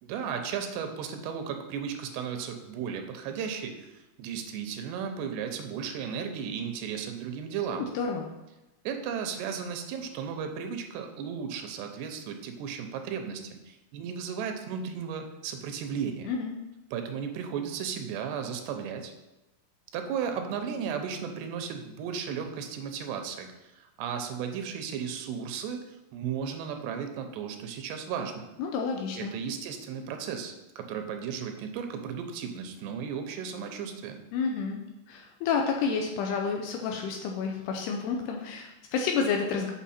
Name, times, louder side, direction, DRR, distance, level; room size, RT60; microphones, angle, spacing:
voice 1, 0.0-7.9 8.8-16.3 16.9-19.1 19.9-28.5 29.2-34.2, right 7 dB, 85° right, 5 dB, 2.8 m, -35 dB
voice 2, 7.7-8.2 16.3-16.5 28.6-29.3 34.3-34.8 35.1-39.7, left 5 dB, 80° left, 2 dB, 2.7 m, -30 dB
7.2 x 6.0 x 4.2 m, 1.0 s
omnidirectional pair, 4.9 m